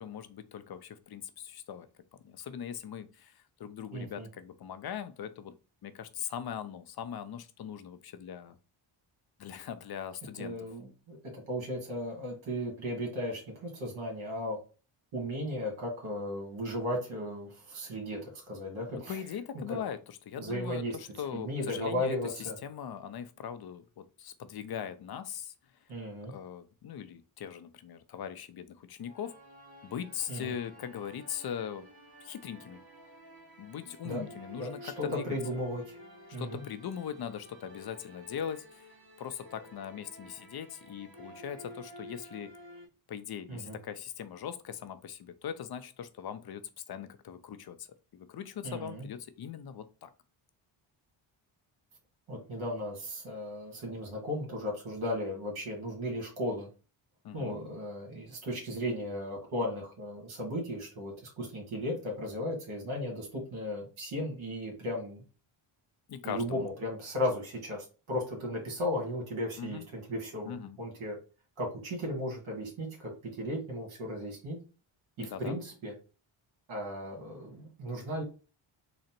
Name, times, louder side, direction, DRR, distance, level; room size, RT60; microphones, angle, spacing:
voice 1, 0.0-1.9 2.2-5.5 5.8-8.6 9.4-10.6 19.1-25.5 26.3-29.3 29.8-31.8 32.2-32.8 33.6-35.4 36.4-38.9 39.2-42.5 43.1-46.6 46.9-47.9 48.1-50.1 57.2-57.6 66.1-66.6 69.6-69.9 70.4-70.8 75.2-75.6, left 8 dB, 50° left, 11 dB, 0.6 m, -40 dB
voice 2, 3.9-4.3 10.4-14.6 15.1-19.2 19.7-19.8 20.4-21.0 21.3-22.5 25.9-26.3 30.3-30.5 34.0-34.2 34.6-36.0 36.3-36.6 43.5-43.7 48.6-49.0 52.3-56.7 57.3-65.2 66.2-71.2 71.6-74.6 75.2-75.9 76.7-78.2, left 1 dB, 75° right, 0 dB, 1.7 m, -36 dB
sound 1, 29.0-42.8, equal, 45° right, 1.4 m, -51 dB
3.9 x 2.1 x 4.3 m, 0.34 s
cardioid pair, 90°, 49 cm